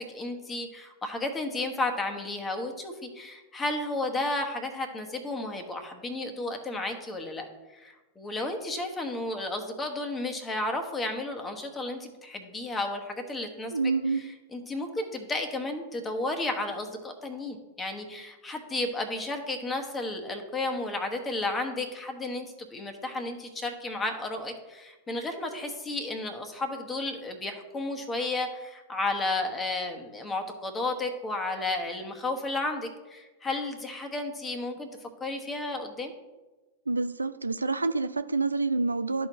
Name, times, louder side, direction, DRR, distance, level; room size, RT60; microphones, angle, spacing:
voice 1, 0.0-13.7 14.1-34.9 35.2-36.1, left 2 dB, 15° left, 4 dB, 1.2 m, -33 dB
voice 2, 13.7-14.3 36.9-39.3, right 3 dB, 85° right, 10 dB, 0.3 m, -27 dB
12.5 x 4.5 x 3.0 m, 1.2 s
figure-of-eight pair, 100°, 0 cm